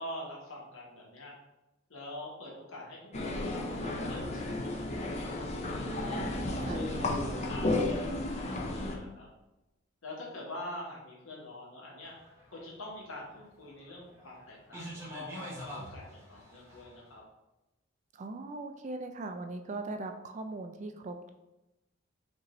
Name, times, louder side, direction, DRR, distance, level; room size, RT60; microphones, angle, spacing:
voice 1, 0.0-1.3 1.9-5.9 6.3-9.3 10.0-12.1 12.5-17.2, left 1 dB, 80° left, -3 dB, 1.2 m, -45 dB
sound 1, 3.1-9.0, left 2 dB, 35° left, 0.5 m, -33 dB
sound 2, 12.0-17.0, equal, 15° right, 1.0 m, -45 dB
voice 2, 18.1-21.3, right 2 dB, 35° right, 6 dB, 0.3 m, -39 dB
5.2 x 2.6 x 3.1 m, 0.97 s
head